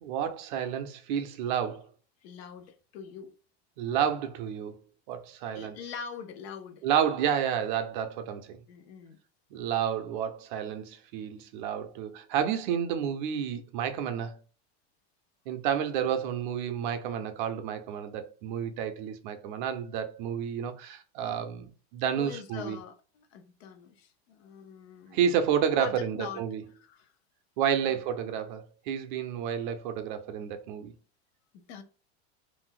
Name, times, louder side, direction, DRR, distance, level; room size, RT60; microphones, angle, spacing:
voice 1, 0.0-1.9 3.8-4.7 5.1-5.8 6.8-8.6 9.5-14.4 15.5-22.8 25.1-26.6 27.6-30.9, right 8 dB, 50° right, 0.4 m, -30 dB
voice 2, 2.2-3.3 5.5-6.9 8.7-9.2 22.2-25.4 25.8-26.4 26.7-27.1 27.8-28.0 31.5-31.8, left 7 dB, 70° left, 0.6 m, -43 dB
2.5 x 2.1 x 3.6 m
supercardioid pair, 175°, 33 cm